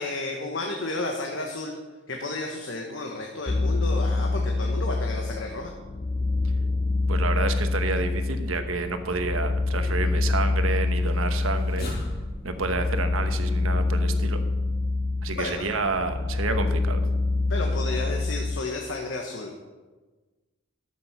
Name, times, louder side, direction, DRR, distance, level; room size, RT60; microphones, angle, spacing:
voice 1, 0.0-1.7 2.1-5.7 15.3-15.7 17.5-19.5, left 2 dB, 65° left, 1 dB, 1.2 m, -32 dB
sound 1, 3.5-18.6, left 3 dB, 30° left, 0.5 m, -26 dB
voice 2, 7.1-11.9 12.4-14.4 15.2-17.0, right 3 dB, 80° right, 8 dB, 1.1 m, -29 dB
sound 2, 11.2-16.5, equal, 45° left, 2.4 m, -42 dB
12.0 x 7.6 x 5.9 m, 1.3 s
head